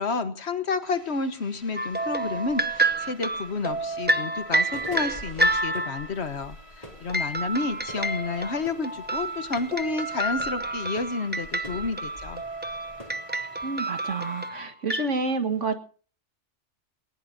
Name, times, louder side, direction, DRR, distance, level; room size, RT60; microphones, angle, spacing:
voice 1, 0.0-12.4, left 4 dB, 60° left, 11 dB, 1.5 m, -30 dB
sound 1, 0.8-14.5, left 1 dB, 25° right, 3.6 m, -52 dB
sound 2, 1.3-1.4 1.8-13.3, equal, 30° left, 3.0 m, -47 dB
sound 3, 1.8-6.2 7.1-15.1, right 2 dB, 10° right, 0.7 m, -29 dB
voice 2, 13.6-15.8, right 3 dB, 75° right, 7 dB, 2.0 m, -29 dB
19.0 x 19.0 x 2.7 m, 0.40 s
omnidirectional pair, 1.2 m